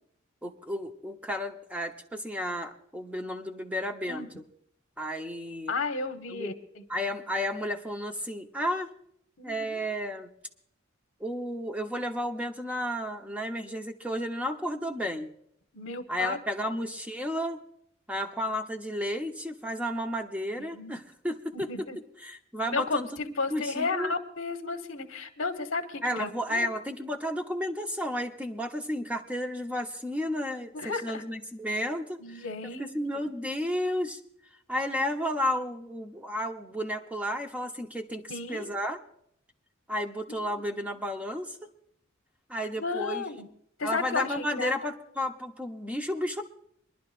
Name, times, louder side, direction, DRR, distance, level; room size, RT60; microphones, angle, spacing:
voice 1, 0.4-4.4 5.0-5.7 6.3-6.5 6.9-8.9 9.4-10.3 11.2-15.3 16.1-17.6 18.1-24.1 26.0-32.4 32.8-34.2 34.7-38.2 38.5-39.0 39.9-41.6 42.5-43.2 43.8-46.4, equal, 5° right, 4 dB, 1.0 m, -32 dB
voice 2, 5.7-6.8 9.4-9.8 15.7-16.7 20.7-21.0 21.5-22.0 22.7-23.1 23.4-26.7 30.7-31.2 32.2-33.3 38.3-38.7 40.4-40.5 42.8-43.5 43.8-44.7, left 4 dB, 65° left, 6 dB, 1.3 m, -33 dB
25.0 x 11.0 x 2.6 m, 0.70 s
head